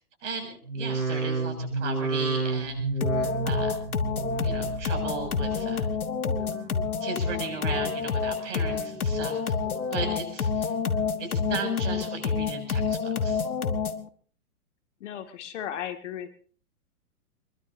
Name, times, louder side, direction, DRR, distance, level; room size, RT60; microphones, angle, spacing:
voice 1, 0.2-2.9 3.4-3.7 4.4-5.9 7.0-9.5 9.9-10.7 11.2-13.5, right 4 dB, 55° right, 5 dB, 7.0 m, -36 dB
sound 1, 0.6-6.0 6.3-6.9 7.4-8.0 8.5-9.1 9.6-10.2 10.7-11.3 11.8-11.9, right 3 dB, 80° right, 6.5 m, -32 dB
sound 2, 3.0-14.1, left 5 dB, 75° left, 1.6 m, -28 dB
voice 2, 15.0-16.3, left 10 dB, 55° left, 7 dB, 2.3 m, -35 dB
23.0 x 22.0 x 2.8 m, 0.43 s
figure-of-eight pair, 115°, 43 cm